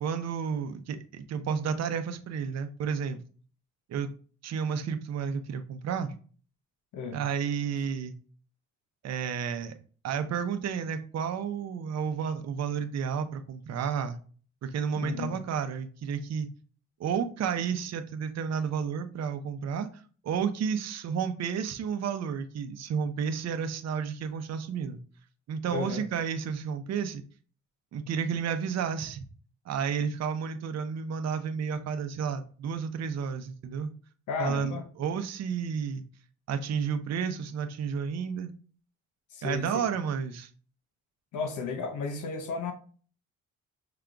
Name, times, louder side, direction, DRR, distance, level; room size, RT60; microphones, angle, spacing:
voice 1, 0.0-3.2 3.9-4.1 4.4-6.1 7.1-8.1 9.0-9.7 10.0-14.2 14.6-16.5 17.0-19.9 20.2-25.0 25.5-27.2 27.9-29.2 29.7-33.9 34.4-36.0 36.5-38.5 39.4-40.5, right 7 dB, 60° right, 0.6 m, -31 dB
voice 2, 14.9-15.4 25.7-26.0 34.3-34.8 39.3-39.8 41.3-42.7, left 5 dB, 80° left, 1.0 m, -34 dB
5.8 x 3.7 x 2.3 m
cardioid pair, 90°, 30 cm